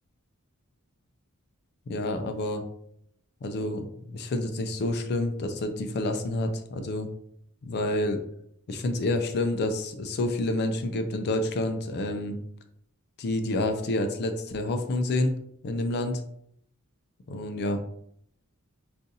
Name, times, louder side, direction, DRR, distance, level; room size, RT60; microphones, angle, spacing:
voice 1, 1.9-2.6 3.4-7.1 7.6-8.2 8.7-12.4 13.2-15.4 15.6-16.2 17.3-17.8, left 2 dB, 50° left, 7 dB, 0.4 m, -28 dB
3.9 x 2.5 x 2.6 m, 0.71 s
head